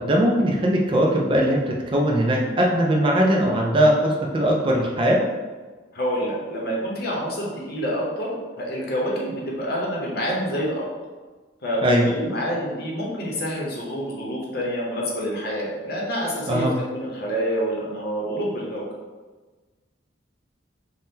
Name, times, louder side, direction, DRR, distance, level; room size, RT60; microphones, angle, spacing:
voice 1, 0.0-5.2 11.8-12.1 16.5-16.7, equal, 25° right, -1 dB, 0.3 m, -20 dB
voice 2, 5.9-10.9 11.6-18.8, equal, 55° left, -3 dB, 0.7 m, -27 dB
3.5 x 2.1 x 2.7 m, 1.3 s
head